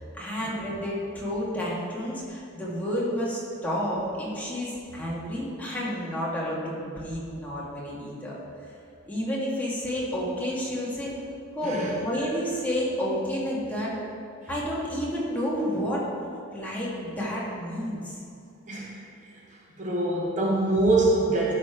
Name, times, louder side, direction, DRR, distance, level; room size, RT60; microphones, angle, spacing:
voice 1, 0.0-8.4 9.1-11.1 11.5-13.9 14.5-16.0 16.5-18.2, equal, 10° left, -7 dB, 1.8 m, -30 dB
voice 2, 19.8-21.5, right 2 dB, 35° right, -4 dB, 1.0 m, -24 dB
12.0 x 4.2 x 4.9 m, 2.5 s
head